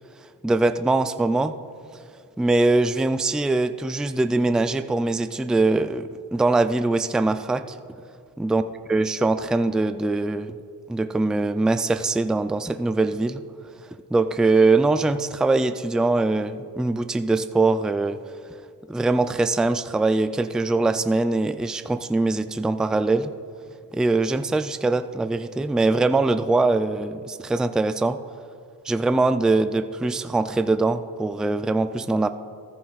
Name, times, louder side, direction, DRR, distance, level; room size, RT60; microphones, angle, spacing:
voice 1, 0.4-1.5 2.4-7.6 8.4-8.6 8.9-10.5 10.9-13.4 14.1-18.2 18.9-23.3 23.9-28.2 28.9-32.3, right 2 dB, ahead, 10 dB, 0.3 m, -22 dB
16.0 x 14.0 x 2.4 m, 2.2 s
cardioid pair, 75°, 37 cm